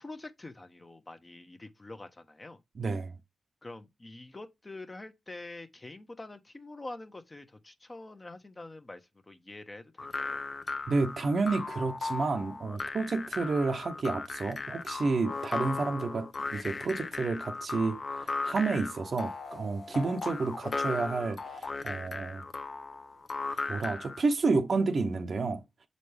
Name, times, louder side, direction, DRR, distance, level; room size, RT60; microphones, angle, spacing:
voice 1, 0.0-2.6 3.6-10.4, left 2 dB, 30° left, 1.0 m, -46 dB
voice 2, 2.8-3.2 10.9-22.4 23.7-25.6, right 3 dB, 60° right, 0.8 m, -30 dB
sound 1, 10.0-24.2, left 3 dB, 55° left, 0.7 m, -37 dB
6.7 x 4.1 x 3.4 m
cardioid pair, 50°, 0 cm